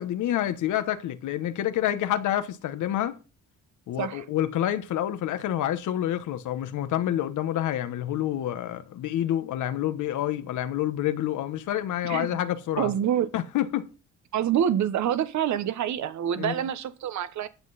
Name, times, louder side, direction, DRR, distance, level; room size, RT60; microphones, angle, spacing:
voice 1, 0.0-3.2 3.9-12.9 13.3-13.9 16.4-16.6, left 12 dB, 80° left, 1.1 m, -28 dB
voice 2, 12.8-13.3 14.3-17.5, right 10 dB, 70° right, 1.2 m, -26 dB
10.5 x 7.6 x 4.1 m
cardioid pair, 90°, 30 cm